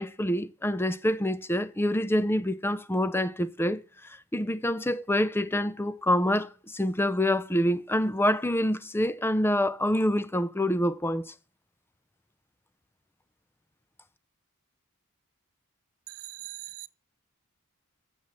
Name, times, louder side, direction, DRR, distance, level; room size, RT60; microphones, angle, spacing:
voice 1, 0.0-11.3, left 1 dB, 10° left, 0.6 m, -26 dB
voice 2, 16.2-16.9, right 17 dB, 65° right, 0.6 m, -41 dB
7.3 x 7.1 x 6.3 m
head